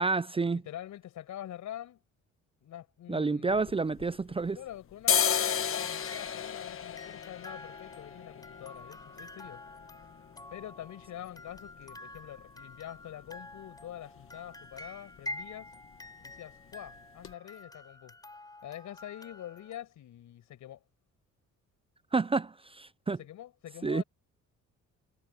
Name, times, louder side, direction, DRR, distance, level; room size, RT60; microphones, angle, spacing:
voice 1, 0.0-0.6 3.1-4.6 22.1-23.2 23.8-24.0, right 4 dB, 20° right, 0.5 m, -29 dB
voice 2, 0.6-2.0 2.6-3.6 4.5-9.6 10.5-15.7 16.2-18.2 18.6-20.8 23.2-24.0, left 12 dB, 75° left, 6.1 m, -45 dB
sound 1, 3.5-4.5 4.9-12.6 12.9-13.0 13.3-13.8 14.1-14.4 14.6-14.9 15.1-15.9 16.2-16.4 16.9-17.0 17.2-17.3, left 8 dB, 45° left, 1.2 m, -34 dB
sound 2, 5.7-19.8, left 1 dB, 15° left, 3.8 m, -48 dB
cardioid pair, 90°, 30 cm